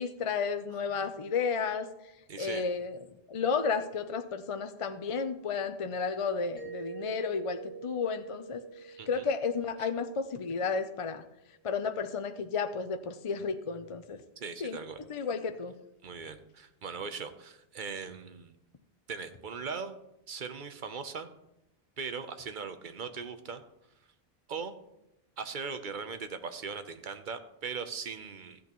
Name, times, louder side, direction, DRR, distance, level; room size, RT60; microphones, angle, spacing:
voice 1, 0.0-1.9 2.4-3.0 3.3-11.2 11.6-14.2 14.6-14.8 15.1-15.7, left 5 dB, 40° left, 9 dB, 0.5 m, -32 dB
voice 2, 2.3-2.6 9.0-9.2 9.8-9.9 14.4-15.0 16.0-18.5 19.1-20.0 20.3-21.3 22.0-23.6 24.5-24.8 25.4-28.6, right 5 dB, 55° right, 9 dB, 0.9 m, -39 dB
Mallet percussion, 6.6-11.2, right 7 dB, 10° left, 1.5 m, -47 dB
14.5 x 8.4 x 3.0 m, 0.85 s
omnidirectional pair, 1.0 m